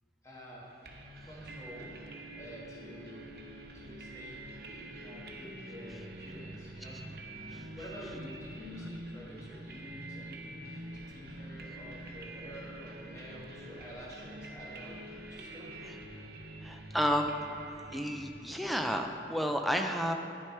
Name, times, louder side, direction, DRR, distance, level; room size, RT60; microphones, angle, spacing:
voice 1, 0.2-0.7 1.2-2.0 2.4-3.3 3.7-7.0 7.6-15.0 15.3-15.8, equal, 20° left, -5 dB, 1.6 m, -48 dB
sound 1, 0.8-19.5, right 1 dB, 55° right, 0.8 m, -46 dB
voice 2, 16.6-17.3 17.9-20.1, equal, ahead, 4 dB, 0.4 m, -31 dB
9.9 x 6.6 x 4.4 m, 2.7 s
head